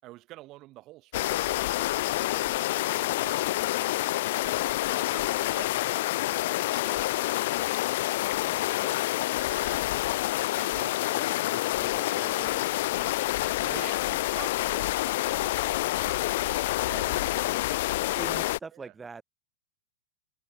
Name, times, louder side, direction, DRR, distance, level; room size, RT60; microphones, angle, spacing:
voice 1, 0.0-6.5 6.8-9.8 10.5-13.1 13.7-16.8 18.7-18.9, right 18 dB, 35° right, 4.7 m, -49 dB
sound 1, 1.1-18.6, left 17 dB, 50° left, 0.3 m, -28 dB
voice 2, 8.5-9.0 11.8-12.6 13.6-13.8 16.9-17.7 18.1-19.2, right 4 dB, 15° right, 1.0 m, -44 dB
figure-of-eight pair, 95°, 0 cm